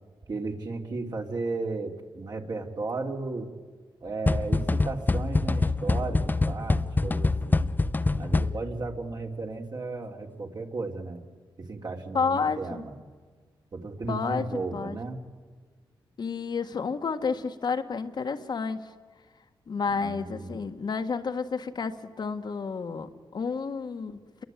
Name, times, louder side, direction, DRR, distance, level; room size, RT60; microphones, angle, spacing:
voice 1, 0.3-3.5 4.0-7.7 8.2-11.2 11.6-13.0 13.7-15.2 19.9-20.6, right 3 dB, 50° right, 2 dB, 3.3 m, -34 dB
sound 1, 4.3-8.9, left 3 dB, 20° left, 0.7 m, -25 dB
voice 2, 12.1-12.6 14.1-14.4 14.7-15.0 16.2-18.9 19.7-24.4, left 5 dB, 55° left, 6 dB, 1.7 m, -30 dB
28.0 x 23.0 x 9.3 m, 1.5 s
cardioid pair, 90°, 9 cm